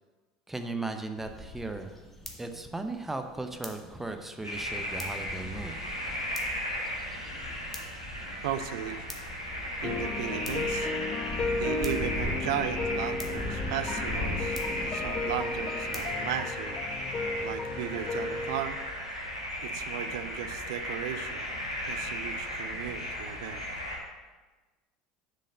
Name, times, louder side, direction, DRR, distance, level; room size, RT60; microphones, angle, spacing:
voice 1, 0.5-2.0 2.4-5.8, right 2 dB, 10° right, 6 dB, 0.7 m, -36 dB
sound 1, 1.2-16.1, left 1 dB, 5° left, 1.6 m, -41 dB
sound 2, 4.4-24.0, equal, 90° left, 1.7 m, -36 dB
voice 2, 8.4-9.1 9.8-10.9 11.5-16.8 17.4-18.8 19.6-21.5 21.9-23.6, right 10 dB, 60° right, 11 dB, 0.6 m, -36 dB
sound 3, 9.8-18.6, left 4 dB, 30° left, 0.7 m, -35 dB
7.1 x 5.4 x 6.6 m, 1.3 s
figure-of-eight pair, 70°, 3 cm